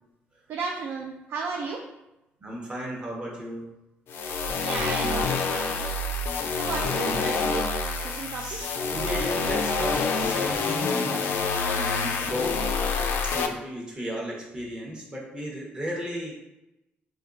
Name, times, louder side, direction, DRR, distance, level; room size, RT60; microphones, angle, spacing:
voice 1, 0.5-1.9 4.6-5.9 6.5-7.6 7.9-8.6, right 4 dB, 65° right, 0 dB, 0.4 m, -34 dB
voice 2, 2.4-3.7 6.7-7.2 8.3-16.3, equal, 25° right, -2 dB, 0.9 m, -35 dB
sound 1, 4.1-13.5, left 4 dB, 65° left, 0.3 m, -27 dB
4.3 x 2.2 x 2.5 m, 0.93 s
cardioid pair, 125°, 4 cm